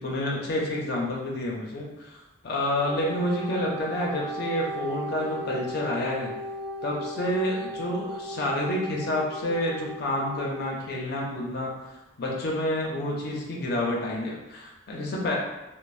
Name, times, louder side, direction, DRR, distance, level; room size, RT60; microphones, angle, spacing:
voice 1, 0.0-2.2 2.4-6.3 6.8-11.7 12.2-15.4, left 1 dB, 60° left, -3 dB, 0.5 m, -29 dB
Wind instrument woodwind instrument, 2.7-10.7, equal, 45° right, 1.1 m, -36 dB
3.1 x 2.0 x 2.4 m, 1.0 s
head